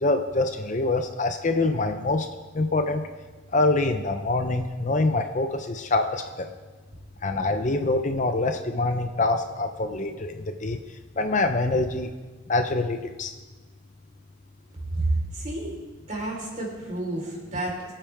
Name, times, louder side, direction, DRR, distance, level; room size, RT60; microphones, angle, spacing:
voice 1, 0.0-2.3 2.5-3.0 3.5-6.5 7.2-10.8 11.2-12.1 12.5-13.3, left 2 dB, 35° left, 7 dB, 0.6 m, -25 dB
voice 2, 14.9-15.8 16.1-17.9, right 2 dB, 35° right, -3 dB, 4.2 m, -30 dB
23.0 x 9.0 x 3.5 m, 1.3 s
head